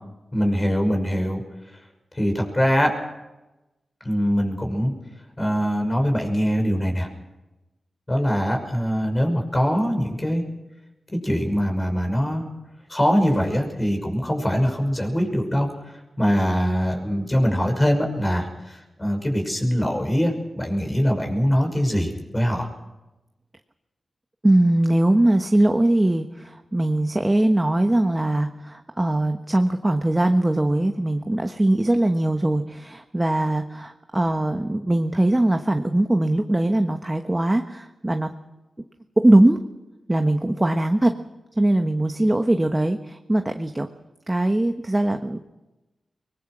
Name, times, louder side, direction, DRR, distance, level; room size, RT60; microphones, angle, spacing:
voice 1, 0.3-1.4 2.1-2.9 4.0-4.9 5.4-7.1 8.1-10.4 11.2-12.4 12.9-15.7 16.2-22.7, equal, 25° left, 3 dB, 5.7 m, -22 dB
voice 2, 24.4-38.3 39.2-39.6 40.1-41.1 41.6-43.9 44.3-45.4, right 1 dB, 20° right, 6 dB, 1.2 m, -21 dB
23.0 x 20.5 x 6.2 m, 1.0 s
cardioid pair, 60°, 0 cm